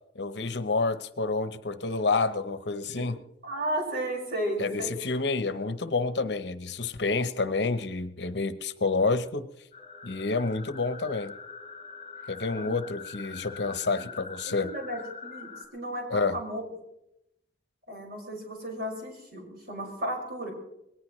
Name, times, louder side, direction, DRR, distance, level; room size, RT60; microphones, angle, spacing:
voice 1, 0.1-3.2 4.6-9.5 10.0-11.3 12.3-14.7 16.1-16.4, left 3 dB, 70° left, 0.9 m, -29 dB
voice 2, 3.4-4.9 12.5-12.8 14.0-14.1 14.5-16.7 17.9-20.5, right 1 dB, 55° right, 5.6 m, -34 dB
sound 1, 9.7-15.7, left 5 dB, 35° left, 4.0 m, -43 dB
21.0 x 19.0 x 3.2 m
head